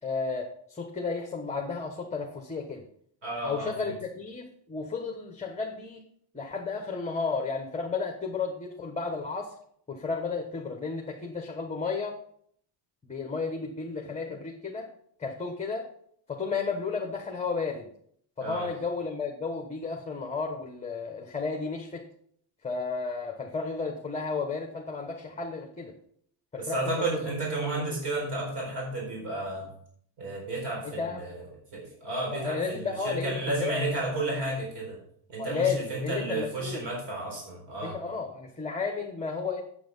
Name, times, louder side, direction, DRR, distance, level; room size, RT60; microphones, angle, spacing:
voice 1, 0.0-2.8 3.4-6.0 6.3-9.5 9.9-12.2 13.0-14.9 15.2-15.9 16.3-17.9 18.4-22.0 22.6-25.9 26.5-27.2 30.8-31.2 32.3-33.8 35.4-36.9 37.8-39.6, left 4 dB, 15° left, 2 dB, 1.1 m, -33 dB
voice 2, 3.2-3.9 18.4-18.7 26.6-29.7 30.2-31.4 31.7-35.0 35.3-38.0, right 2 dB, 65° right, -2 dB, 4.6 m, -32 dB
8.8 x 8.1 x 5.4 m, 0.64 s
cardioid pair, 165°, 44 cm